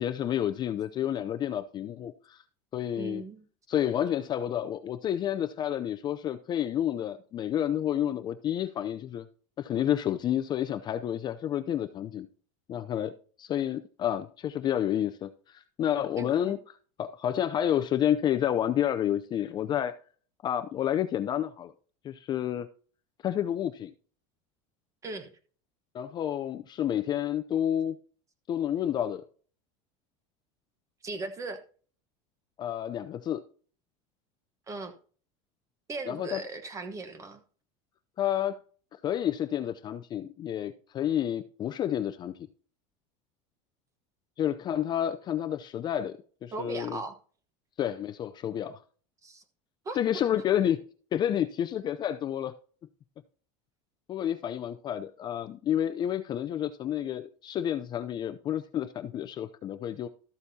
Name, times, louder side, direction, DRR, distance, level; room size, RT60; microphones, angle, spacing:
voice 1, 0.0-2.4 2.7-3.2 3.7-9.3 9.6-12.3 12.7-13.1 13.4-16.6 17.0-19.9 20.4-21.7 22.0-22.7 23.2-23.9 25.9-28.0 28.5-29.2 32.6-33.4 36.1-36.4 38.2-38.6 39.0-42.5 44.4-46.1 46.4-47.0 47.8-48.8 49.9-50.8 51.1-52.5 54.1-60.1, left 10 dB, 30° left, 0.5 m, -30 dB
voice 2, 3.0-3.4 16.2-16.6 25.0-25.3 31.0-31.6 34.7-34.9 35.9-37.4 46.5-47.2 49.2-49.4 49.8-50.0, right 3 dB, 20° right, 1.2 m, -38 dB
13.0 x 8.1 x 2.8 m
supercardioid pair, 150°, 16 cm